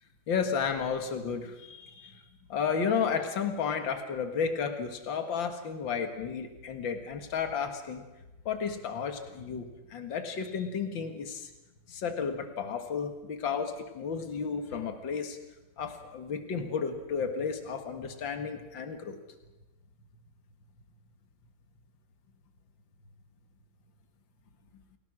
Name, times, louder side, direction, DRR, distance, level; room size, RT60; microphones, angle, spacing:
voice 1, 0.3-2.2 2.5-8.0 8.5-11.5 11.9-15.4 15.8-19.2, left 6 dB, 70° left, 6 dB, 2.4 m, -32 dB
29.0 x 17.0 x 6.3 m, 1.0 s
omnidirectional pair, 2.2 m